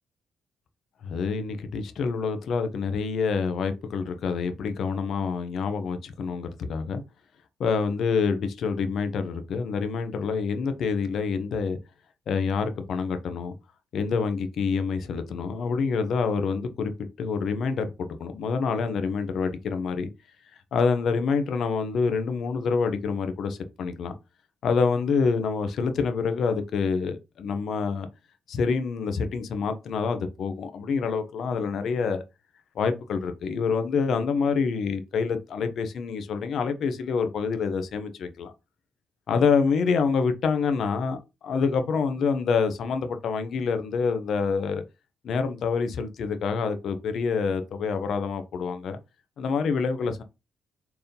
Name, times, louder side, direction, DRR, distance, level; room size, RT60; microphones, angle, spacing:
voice 1, 1.0-7.0 7.6-11.8 12.3-13.5 13.9-16.9 17.2-20.1 20.7-24.1 24.6-28.1 28.5-32.2 32.7-38.5 39.3-41.2 41.4-44.8 45.2-49.0 49.4-50.2, left 5 dB, 65° left, 1.1 m, -27 dB
4.8 x 3.7 x 5.3 m
cardioid pair, 90°, 0 cm